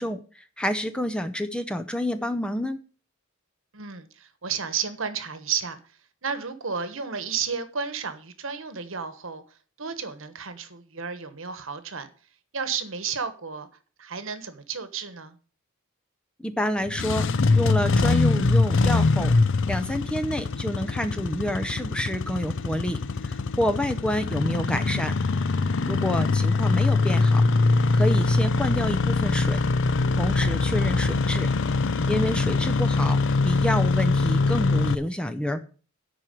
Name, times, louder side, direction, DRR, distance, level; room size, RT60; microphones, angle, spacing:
voice 1, 0.0-2.8 16.4-17.3 17.5-19.3 19.7-25.1 25.9-27.4 27.9-29.6 30.2-31.5 32.1-33.2 33.4-35.6, equal, 5° left, 0.6 m, -28 dB
voice 2, 3.7-5.8 6.2-9.4 9.8-12.1 12.5-13.7 14.0-15.3 25.9-26.0, right 6 dB, 65° right, 1.2 m, -32 dB
Engine starting, 16.8-35.0, left 3 dB, 60° left, 0.6 m, -23 dB
10.5 x 4.6 x 7.6 m
head